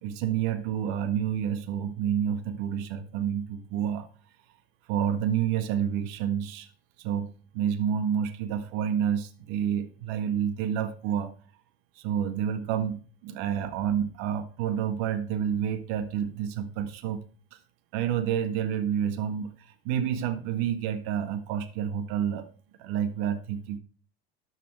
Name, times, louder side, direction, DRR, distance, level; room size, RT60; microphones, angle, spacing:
voice 1, 0.0-4.1 4.9-6.7 7.0-7.3 7.5-11.3 11.9-17.2 17.5-17.6 17.9-22.5 22.8-23.8, right 9 dB, 60° right, 8 dB, 1.7 m, -29 dB
12.5 x 5.1 x 6.5 m, 0.39 s
hypercardioid pair, 85°, 32 cm